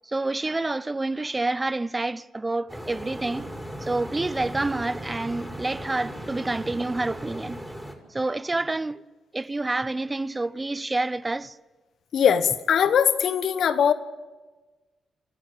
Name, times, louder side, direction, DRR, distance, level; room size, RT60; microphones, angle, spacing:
voice 1, 0.0-3.5 3.8-7.6 8.1-9.0 9.3-11.6, right 2 dB, 25° right, 0.6 m, -28 dB
sound 1, 2.7-7.9, equal, ahead, 5.2 m, -37 dB
voice 2, 12.1-13.9, left 8 dB, 70° left, 1.2 m, -21 dB
28.0 x 12.0 x 8.8 m
supercardioid pair, 50°, 0 cm